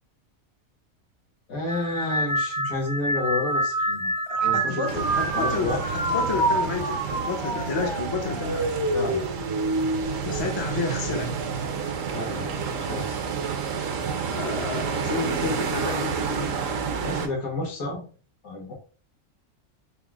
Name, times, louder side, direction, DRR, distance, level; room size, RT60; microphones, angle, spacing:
voice 1, 1.5-4.1 4.4-5.1 5.3-5.8 8.9-9.3 12.1-13.2 17.0-18.0 18.4-18.7, left 2 dB, 75° left, 1.7 m, -31 dB
sound 1, 1.7-11.3 11.7-12.3 13.3-13.6, right 1 dB, 30° right, 0.4 m, -28 dB
voice 2, 4.3-8.8 10.2-11.3 14.3-16.6, left 4 dB, 35° left, 0.4 m, -31 dB
sound 2, 4.9-17.3, right 6 dB, 70° right, 1.0 m, -30 dB
4.7 x 2.0 x 3.5 m
omnidirectional pair, 1.5 m